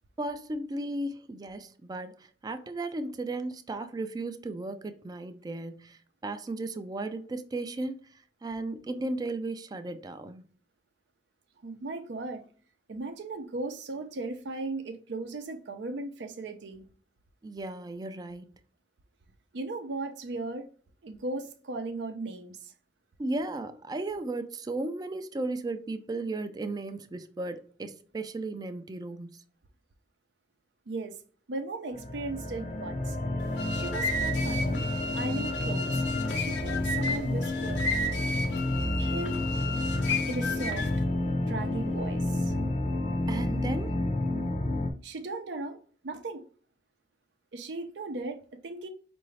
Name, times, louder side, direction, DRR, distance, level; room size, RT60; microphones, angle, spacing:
voice 1, 0.2-10.4 17.4-18.5 23.2-29.4 43.3-44.0, right 2 dB, 20° right, 0.3 m, -35 dB
voice 2, 11.6-12.4 12.9-16.8 19.5-20.7 21.0-22.7 30.9-31.2 31.5-33.2 33.7-36.0 36.3-37.9 39.0-39.4 40.3-40.9 41.4-42.5 45.0-45.8 46.0-46.4 47.5-48.9, right 2 dB, 85° right, 0.6 m, -37 dB
sound 1, 31.9-44.9, left 1 dB, 40° left, 0.6 m, -30 dB
sound 2, 33.4-41.0, left 1 dB, 85° left, 0.9 m, -34 dB
4.7 x 2.6 x 3.2 m
head